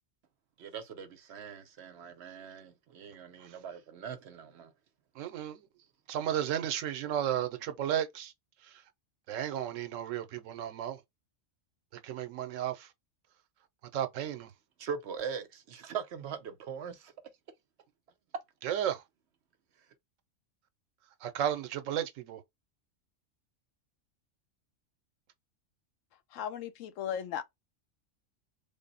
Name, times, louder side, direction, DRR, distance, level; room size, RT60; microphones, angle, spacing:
voice 1, 0.6-4.7 14.8-17.1, right 7 dB, 65° right, 0.9 m, -41 dB
voice 2, 5.1-5.7 6.1-8.3 8.6-8.8 9.3-11.0 11.9-12.9 13.9-14.5 18.6-19.0 21.2-22.4, right 10 dB, 90° right, 1.0 m, -34 dB
voice 3, 26.3-27.4, left 9 dB, 85° left, 1.0 m, -36 dB
3.6 x 2.0 x 3.9 m
omnidirectional pair, 1.3 m